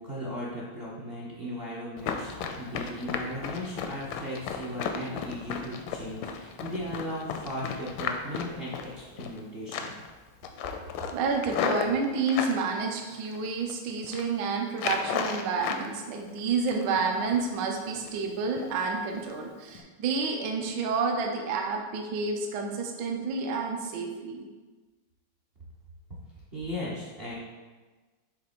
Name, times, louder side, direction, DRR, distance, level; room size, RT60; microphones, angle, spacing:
voice 1, 0.0-9.9 26.5-27.3, equal, 50° right, -6 dB, 0.7 m, -37 dB
Run, 2.0-9.4 9.7-10.1 10.4-12.6 13.1-13.7 14.0-14.3 14.7-15.9 16.2-17.0 17.3-17.5 17.9-18.2 18.6-18.7 19.2-19.3 19.7-19.8, left 6 dB, 75° left, 1.2 m, -34 dB
voice 2, 11.1-24.4, right 4 dB, 65° right, 2 dB, 1.2 m, -29 dB
7.5 x 3.4 x 4.4 m, 1.3 s
omnidirectional pair, 2.4 m